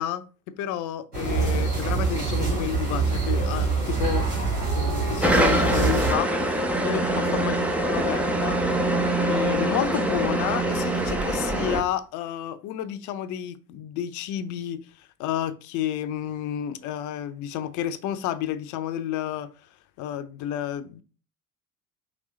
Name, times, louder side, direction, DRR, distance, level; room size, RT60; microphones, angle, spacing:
voice 1, 0.0-4.3 4.7-6.3 6.8-8.6 9.2-19.5 20.0-21.0, left 11 dB, 40° left, 0.6 m, -30 dB
sound 1, 1.1-6.1, right 4 dB, 90° right, 1.9 m, -25 dB
sound 2, 5.2-11.8, right 1 dB, 5° right, 0.3 m, -24 dB
5.1 x 3.2 x 3.2 m
figure-of-eight pair, 60°, 45 cm